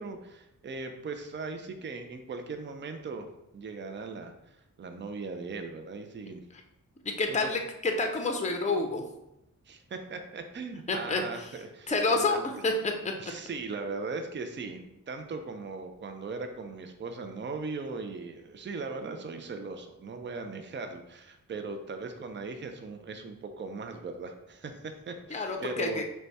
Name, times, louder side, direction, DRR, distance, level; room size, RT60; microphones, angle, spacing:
voice 1, 0.0-3.3 3.5-6.4 7.3-7.5 9.7-12.4 13.2-26.0, right 4 dB, 35° right, 6 dB, 0.5 m, -39 dB
voice 2, 7.0-9.0 10.9-11.2 11.9-12.9 25.3-26.0, left 3 dB, 20° left, 3 dB, 0.6 m, -28 dB
4.6 x 2.2 x 4.0 m, 0.88 s
wide cardioid pair, 75°, 34 cm